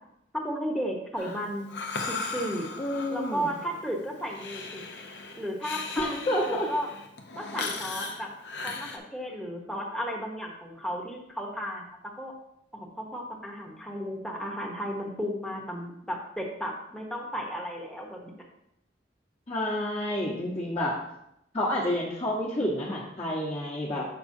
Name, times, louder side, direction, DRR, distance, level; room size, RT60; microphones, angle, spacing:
voice 1, 0.3-1.7 2.1-2.7 3.1-4.8 5.4-6.9 7.3-8.3 8.6-12.3 12.7-18.5, equal, 5° left, -1 dB, 0.9 m, -34 dB
Breathing, 1.2-9.0, left 4 dB, 75° left, 0.8 m, -38 dB
voice 2, 2.8-3.5 6.0-6.7 19.5-21.0 21.5-24.1, left 1 dB, 35° left, -6 dB, 1.2 m, -29 dB
7.8 x 6.0 x 2.7 m, 0.80 s
head